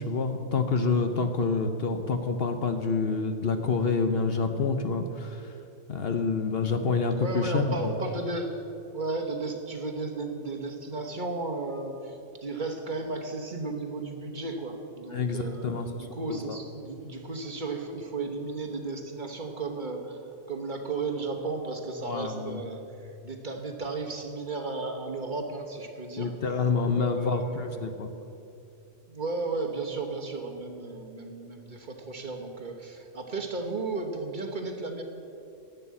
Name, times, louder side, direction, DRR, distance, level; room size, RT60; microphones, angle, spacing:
voice 1, 0.0-5.6 5.9-7.9 15.1-15.9 16.3-16.6 22.0-22.6 26.2-28.1, left 4 dB, 55° left, 7 dB, 0.9 m, -27 dB
voice 2, 7.2-8.6 8.9-26.3 26.9-27.8 29.1-35.0, right 3 dB, 40° right, 3 dB, 1.2 m, -34 dB
11.0 x 8.2 x 8.3 m, 2.7 s
omnidirectional pair, 1.3 m